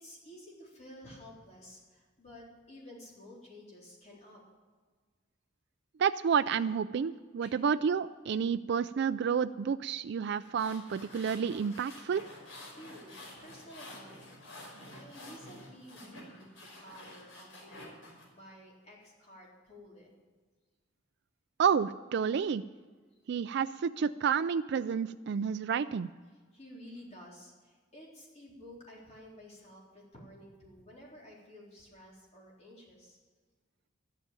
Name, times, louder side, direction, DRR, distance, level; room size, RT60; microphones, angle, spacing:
voice 1, 0.0-4.4 7.4-7.6 12.7-20.1 23.1-23.2 26.3-33.2, equal, 35° left, -4 dB, 3.7 m, -52 dB
voice 2, 6.0-12.2 21.6-22.6 23.3-26.1, right 6 dB, 60° right, 11 dB, 0.3 m, -30 dB
sound 1, 10.3-18.2, left 1 dB, 90° left, 5.4 m, -50 dB
13.5 x 9.0 x 8.9 m, 1.5 s
head